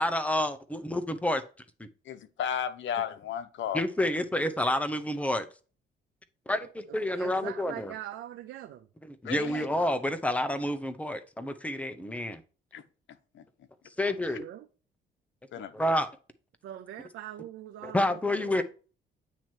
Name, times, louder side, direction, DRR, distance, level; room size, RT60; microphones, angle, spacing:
voice 1, 0.0-1.4 3.7-5.5 6.5-7.9 9.2-12.4 14.0-14.4 15.6-16.1 17.8-18.6, left 1 dB, 5° left, 0.8 m, -29 dB
voice 2, 2.0-3.8 9.2-9.7 12.7-12.8 13.1-13.4 15.5-15.8, left 8 dB, 70° left, 0.9 m, -34 dB
voice 3, 6.9-8.9 14.4-14.7 16.6-18.6, right 12 dB, 85° right, 0.6 m, -42 dB
9.0 x 3.0 x 4.5 m
cardioid pair, 90°, 20 cm